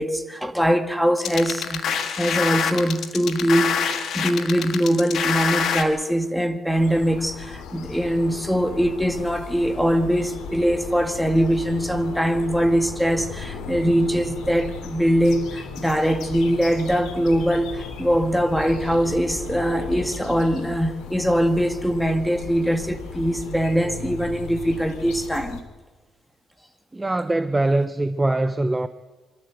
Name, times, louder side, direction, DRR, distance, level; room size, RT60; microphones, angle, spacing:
voice 1, 0.0-1.9 2.2-25.6, equal, ahead, 1.9 m, -22 dB
sound 1, 1.2-5.8, left 7 dB, 65° left, 2.0 m, -25 dB
sound 2, 6.7-25.6, left 5 dB, 85° left, 2.9 m, -36 dB
voice 2, 26.9-28.9, right 2 dB, 15° right, 0.7 m, -22 dB
25.0 x 13.5 x 8.1 m
cardioid pair, 90°, 0 cm